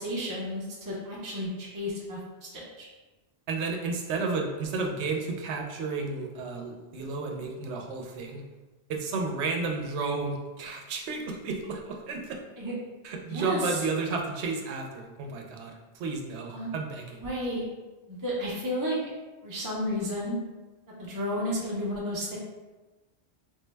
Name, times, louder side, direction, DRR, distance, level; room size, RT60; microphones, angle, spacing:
voice 1, 0.0-2.9 12.6-12.7 13.3-13.8 16.5-16.7 17.2-17.6 18.1-19.0 19.4-20.4 21.0-22.4, equal, 25° right, -5 dB, 0.4 m, -32 dB
voice 2, 3.5-8.4 8.9-12.4 13.0-17.2, right 4 dB, 85° right, 2 dB, 0.9 m, -32 dB
3.5 x 2.1 x 3.2 m, 1.2 s
omnidirectional pair, 1.1 m